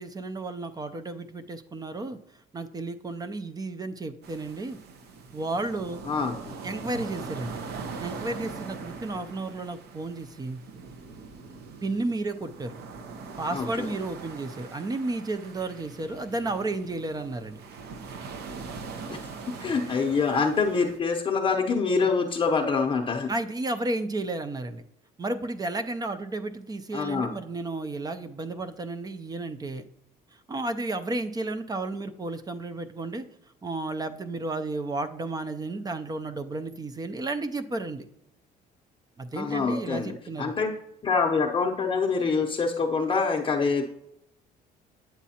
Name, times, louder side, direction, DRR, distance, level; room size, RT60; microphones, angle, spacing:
voice 1, 0.0-2.2 2.5-4.8 5.3-6.0 6.6-7.6 8.0-10.6 11.8-12.8 13.4-17.6 23.3-24.8 25.2-29.8 30.5-33.3 33.6-38.1 39.2-40.5, right 2 dB, 25° right, 9 dB, 0.4 m, -32 dB
sound 1, 4.2-21.0, right 4 dB, 70° right, 0.9 m, -41 dB
voice 2, 6.1-6.6 13.5-13.9 19.1-19.2 19.6-23.3 26.9-27.3 39.4-43.8, left 4 dB, 30° left, 0 dB, 0.7 m, -26 dB
9.1 x 7.3 x 2.8 m, 0.79 s
cardioid pair, 110°, 17 cm